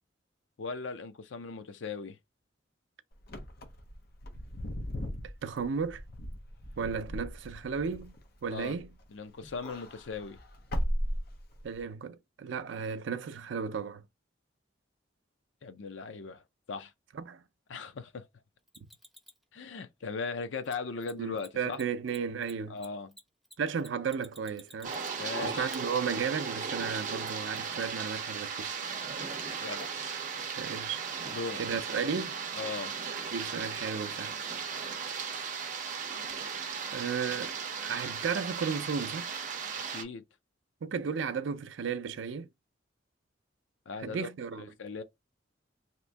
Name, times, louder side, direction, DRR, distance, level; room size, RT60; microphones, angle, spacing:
voice 1, 0.6-2.2 8.5-8.8 9.1-10.4 15.6-16.4 16.7-16.9 17.7-18.3 19.5-21.8 22.7-23.1 25.2-25.7 29.6-29.9 31.3-31.6 32.6-32.9 39.9-40.2 43.9-44.3 44.6-45.0, left 4 dB, 85° left, 0.5 m, -38 dB
Wind / Car, 3.2-9.0 9.4-11.8, equal, 55° left, 0.8 m, -37 dB
voice 2, 5.4-6.0 6.8-8.2 8.4-8.9 11.6-14.0 17.1-17.4 21.2-22.8 23.6-25.0 25.4-28.8 30.6-31.3 31.6-32.4 33.3-34.3 36.9-39.3 40.8-42.5 44.0-44.7, right 6 dB, 80° right, 0.4 m, -34 dB
Mechanisms, 18.7-19.4 20.6-20.7 21.0-21.1 21.4-21.5 21.7-25.3 25.7-25.8 27.3-27.4, equal, ahead, 0.5 m, -52 dB
sound 1, 24.8-40.0, right 6 dB, 45° right, 0.7 m, -36 dB
2.9 x 2.6 x 3.3 m
head